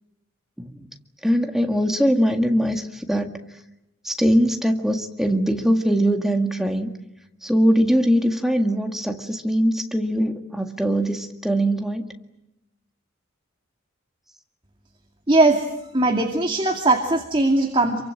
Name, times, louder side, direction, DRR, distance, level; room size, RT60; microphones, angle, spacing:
voice 1, 1.2-3.4 4.0-6.9 7.4-12.1, equal, ahead, 4 dB, 1.9 m, -21 dB
voice 2, 15.3-15.7 15.9-18.0, right 2 dB, 25° right, 3 dB, 2.4 m, -19 dB
28.0 x 24.0 x 8.9 m, 0.89 s
head